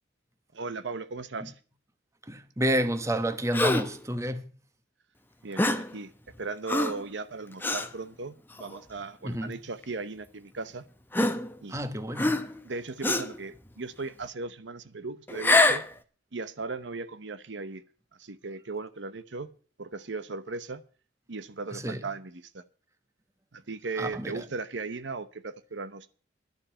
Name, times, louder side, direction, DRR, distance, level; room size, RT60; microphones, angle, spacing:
voice 1, 0.5-1.5 5.4-6.1 6.4-10.9 11.6-12.0 12.6-15.8 16.3-17.8 18.2-19.5 19.8-20.8 21.3-22.6 23.5-26.1, right 3 dB, 75° right, 0.9 m, -37 dB
voice 2, 2.2-4.5 9.2-9.6 11.7-12.5 21.7-22.1 24.0-24.5, equal, 15° right, 1.0 m, -30 dB
Gasp, 3.5-4.0 5.6-5.9 6.7-7.0 7.6-7.9 8.6-8.8 9.8-9.9 11.1-11.8 12.2-12.6 13.0-13.4 15.3-15.9, left 2 dB, 10° left, 0.8 m, -25 dB
11.5 x 7.3 x 8.9 m
head